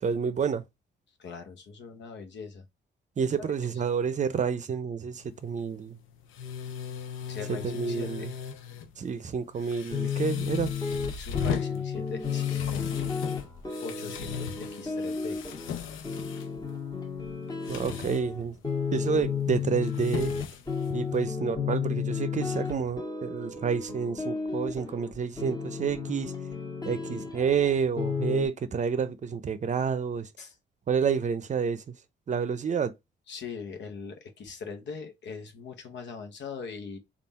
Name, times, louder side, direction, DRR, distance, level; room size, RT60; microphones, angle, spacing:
voice 1, 0.0-0.6 3.2-6.0 7.5-8.3 9.0-10.7 17.7-18.6 18.9-20.3 20.9-26.3 26.8-30.3 30.9-31.9 32.3-32.9, right 6 dB, 40° right, 0.6 m, -29 dB
voice 2, 1.2-2.6 3.4-3.5 7.3-8.3 11.1-13.2 13.8-15.4 30.4-30.5 33.3-37.0, left 5 dB, 65° left, 0.9 m, -41 dB
sound 1, 5.1-21.3, left 7 dB, 85° left, 0.7 m, -39 dB
sound 2, 9.9-28.5, left 6 dB, 20° left, 1.4 m, -33 dB
3.5 x 2.5 x 4.1 m
cardioid pair, 90°, 20 cm